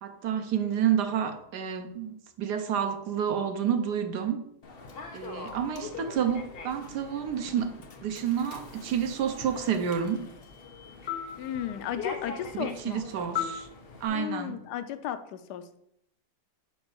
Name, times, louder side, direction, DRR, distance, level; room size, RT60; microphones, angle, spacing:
voice 1, 0.0-4.4 5.1-7.7 8.0-10.3 12.5-13.7 14.0-14.6, right 8 dB, 90° right, 1.4 m, -29 dB
Human voice / Subway metro underground, 4.6-14.1, left 6 dB, 45° left, 0.9 m, -40 dB
voice 2, 11.4-13.0 14.1-15.8, left 10 dB, 90° left, 1.2 m, -35 dB
5.2 x 5.2 x 6.2 m
omnidirectional pair, 1.7 m